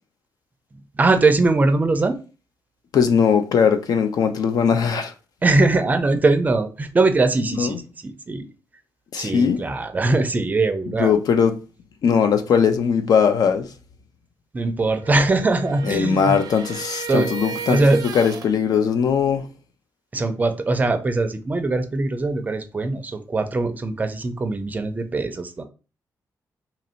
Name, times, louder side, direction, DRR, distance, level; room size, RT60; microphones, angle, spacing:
voice 1, 1.0-2.2 5.4-8.5 9.2-11.1 14.5-16.4 17.1-17.3 17.7-18.0 20.1-25.6, right 3 dB, 25° right, 0.4 m, -21 dB
voice 2, 2.9-5.1 7.6-7.8 9.1-9.6 11.0-11.5 12.0-13.7 15.8-17.8 18.1-19.4, left 6 dB, 70° left, 0.5 m, -19 dB
sound 1, 14.9-18.5, right 6 dB, 85° right, 0.5 m, -34 dB
2.9 x 2.6 x 4.3 m
wide cardioid pair, 160°, 7 cm